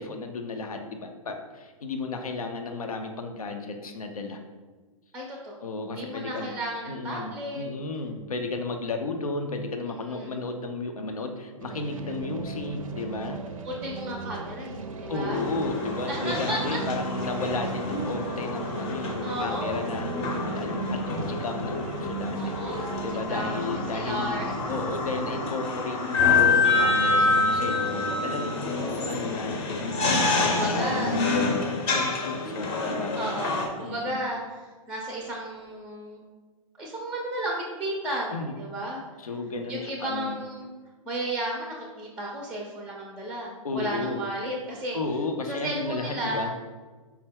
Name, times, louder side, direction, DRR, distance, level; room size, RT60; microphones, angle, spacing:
voice 1, 0.0-4.4 5.6-6.5 6.9-13.4 15.1-24.4 24.7-29.6 30.0-33.2 33.8-34.2 38.3-38.5 39.2-40.4 43.6-44.2 44.9-46.5, left 3 dB, 80° left, 5 dB, 0.5 m, -33 dB
voice 2, 5.1-7.6 9.9-10.4 13.6-15.4 16.1-16.8 19.2-19.8 22.3-23.6 23.9-24.5 27.7-29.1 30.4-31.2 33.2-34.4 34.9-36.2 36.8-39.0 39.7-40.7 41.1-45.0 45.4-46.5, right 1 dB, 5° right, -2 dB, 0.5 m, -34 dB
sound 1, 11.6-25.5, right 4 dB, 70° right, 0.5 m, -38 dB
sound 2, 15.3-33.7, left 3 dB, 30° left, 0.7 m, -27 dB
4.4 x 2.1 x 3.5 m, 1.3 s
figure-of-eight pair, 115°, 18 cm